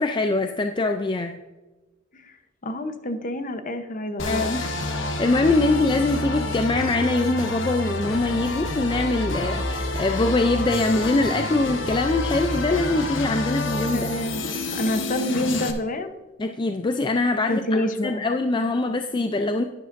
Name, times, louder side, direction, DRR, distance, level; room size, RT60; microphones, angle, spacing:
voice 1, 0.0-1.4 4.3-14.1 16.4-19.6, left 2 dB, 25° left, 6 dB, 0.4 m, -23 dB
voice 2, 2.6-4.5 13.9-14.4 14.7-16.1 17.5-18.2, left 1 dB, 45° left, 8 dB, 0.8 m, -27 dB
sound 1, 4.2-15.7, left 2 dB, 70° left, 1.1 m, -28 dB
11.5 x 10.0 x 2.6 m, 1.2 s
head